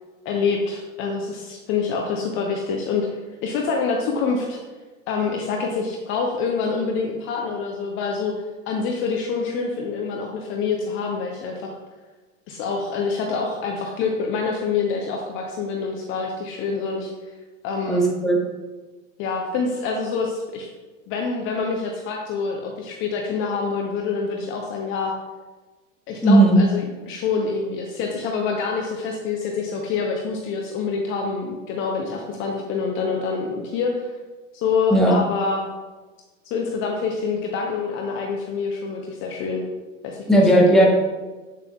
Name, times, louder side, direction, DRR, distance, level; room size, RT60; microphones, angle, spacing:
voice 1, 0.2-3.1 3.4-4.6 5.1-8.3 8.7-11.8 12.5-17.1 17.6-18.0 19.2-20.7 21.1-25.1 26.1-34.1 34.5-35.7 36.4-39.6 40.0-40.4 40.7-40.8, left 5 dB, 30° left, 1 dB, 0.7 m, -26 dB
voice 2, 17.9-18.4 26.2-26.6 34.9-35.2 40.3-40.9, right 1 dB, ahead, -2 dB, 1.2 m, -15 dB
7.5 x 6.9 x 2.3 m, 1.3 s
figure-of-eight pair, 85°, 38 cm